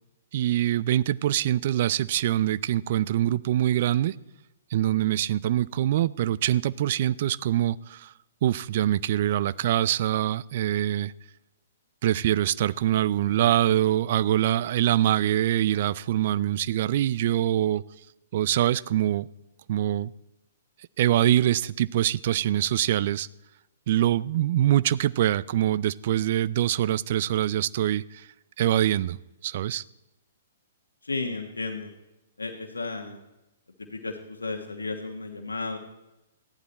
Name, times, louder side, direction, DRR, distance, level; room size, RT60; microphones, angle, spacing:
voice 1, 0.3-4.1 4.7-8.1 8.4-11.1 12.0-17.8 18.3-19.3 19.7-20.1 21.0-23.3 23.9-28.3 28.6-29.2 29.4-29.8, right 12 dB, 50° right, 0.4 m, -24 dB
voice 2, 31.0-31.9 32.4-33.2 33.8-35.8, left 3 dB, 85° left, 1.3 m, -33 dB
14.5 x 11.0 x 4.2 m
figure-of-eight pair, 120°, 0 cm